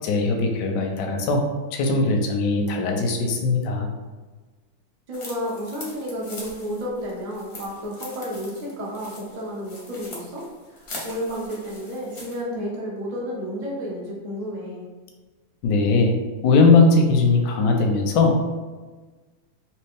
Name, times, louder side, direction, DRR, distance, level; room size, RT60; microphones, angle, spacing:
voice 1, 0.0-1.4 1.7-3.9 15.6-16.1 16.4-18.4, left 3 dB, 70° left, 2 dB, 1.1 m, -19 dB
sound 1, 5.1-12.4, left 2 dB, 50° left, 0.7 m, -42 dB
voice 2, 5.1-14.9, equal, 60° right, -5 dB, 0.4 m, -31 dB
3.3 x 2.9 x 3.3 m, 1.3 s
omnidirectional pair, 2.2 m